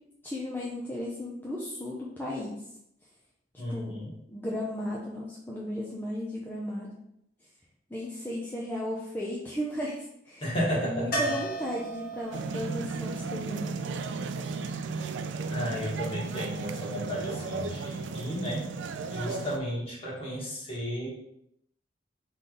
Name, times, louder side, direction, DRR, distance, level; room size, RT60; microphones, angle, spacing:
voice 1, 0.2-2.6 3.7-6.9 7.9-10.4 10.7-13.8, left 1 dB, 10° left, -5 dB, 0.6 m, -35 dB
voice 2, 3.6-4.1 10.4-11.2 15.5-18.7 19.1-21.1, equal, 30° left, -6 dB, 1.6 m, -33 dB
sound 1, 11.1-15.0 17.7-17.8 18.0-18.1, right 2 dB, 55° left, 0.8 m, -37 dB
sound 2, 12.3-19.6, right 4 dB, 90° right, 0.4 m, -35 dB
3.9 x 3.3 x 3.8 m, 0.77 s
head